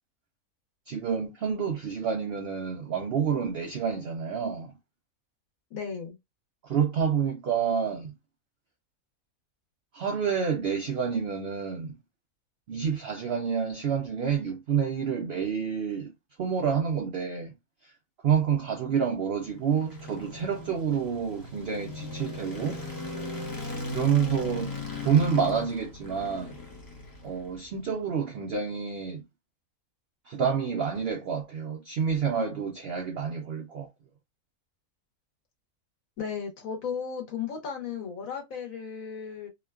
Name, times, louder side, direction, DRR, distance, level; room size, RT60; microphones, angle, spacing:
voice 1, 0.9-4.8 6.6-8.1 9.9-11.9 12.7-16.1 16.4-17.5 17.8-17.9 18.2-22.8 23.9-24.7 25.0-26.6 27.2-29.2 30.3-33.9, right 7 dB, 70° right, 0.5 m, -28 dB
voice 2, 5.7-6.2 36.2-39.5, left 6 dB, 70° left, 1.4 m, -35 dB
sound 1, 19.2-27.7, left 2 dB, 25° left, 0.5 m, -38 dB
2.9 x 2.2 x 2.2 m
omnidirectional pair, 1.6 m